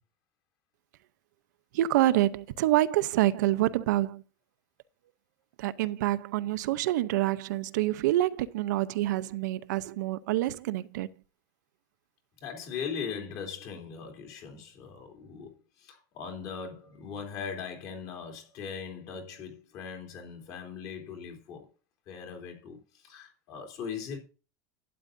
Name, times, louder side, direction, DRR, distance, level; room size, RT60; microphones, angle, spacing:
voice 1, 1.7-4.2 5.6-11.1, right 15 dB, 80° right, 0.7 m, -27 dB
voice 2, 12.4-21.7 22.1-24.2, left 6 dB, 35° left, 3.2 m, -40 dB
12.0 x 9.5 x 2.6 m
supercardioid pair, 180°, 10 cm